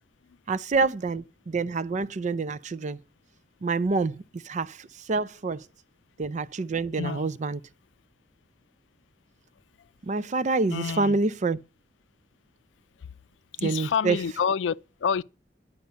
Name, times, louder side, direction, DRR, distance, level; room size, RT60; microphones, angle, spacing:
voice 1, 0.5-3.0 3.6-5.6 6.2-7.6 10.0-11.6 13.6-14.2, right 3 dB, 40° right, 0.5 m, -27 dB
voice 2, 7.0-7.3 10.7-11.2 13.6-14.8 15.0-15.2, left 6 dB, 85° left, 0.4 m, -27 dB
11.0 x 5.3 x 6.7 m
head